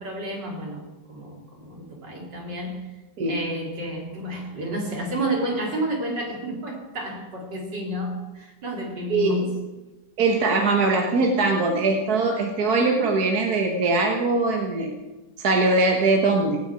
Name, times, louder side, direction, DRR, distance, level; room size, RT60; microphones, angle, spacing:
voice 1, 0.0-2.9 3.3-9.7, right 1 dB, 80° right, 0 dB, 3.7 m, -30 dB
voice 2, 9.1-9.4 10.2-14.9 15.4-16.6, right 3 dB, 60° right, 2 dB, 1.9 m, -21 dB
18.5 x 6.7 x 8.9 m, 1.1 s
omnidirectional pair, 1.9 m